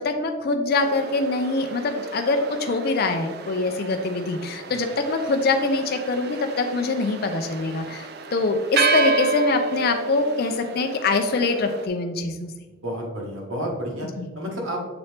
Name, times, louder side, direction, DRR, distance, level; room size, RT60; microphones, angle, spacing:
voice 1, 0.0-12.5 14.2-14.3, left 3 dB, 45° left, 6 dB, 0.4 m, -24 dB
sound 1, 0.7-11.9, right 4 dB, 50° right, 0.5 m, -30 dB
voice 2, 12.8-14.1 14.3-14.8, equal, 75° right, 0 dB, 1.5 m, -30 dB
6.9 x 4.1 x 3.3 m, 1.3 s
head